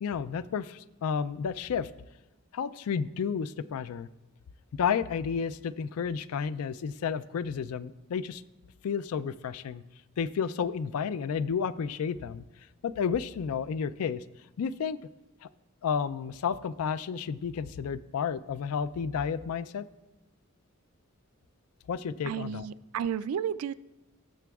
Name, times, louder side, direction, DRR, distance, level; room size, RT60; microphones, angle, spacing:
voice 1, 0.0-1.9 2.5-4.1 4.8-8.4 8.8-9.8 10.2-12.4 12.8-14.2 14.6-15.0 15.4-15.5 15.8-19.8 21.9-22.6, left 6 dB, 75° left, 15 dB, 0.3 m, -31 dB
voice 2, 22.2-23.8, right 8 dB, 75° right, 16 dB, 0.3 m, -32 dB
18.0 x 6.8 x 2.3 m, 1.0 s
head